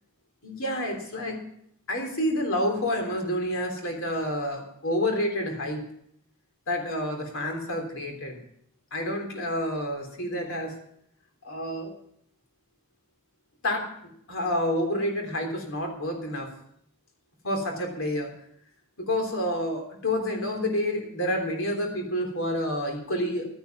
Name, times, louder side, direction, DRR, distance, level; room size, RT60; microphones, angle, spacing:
voice 1, 0.4-1.4 1.9-5.8 6.7-8.4 8.9-10.7 11.4-11.9 13.6-13.9 14.3-16.5 17.4-18.3 19.0-23.5, left 1 dB, 65° left, 3 dB, 3.5 m, -29 dB
12.5 x 10.0 x 6.0 m, 0.70 s
head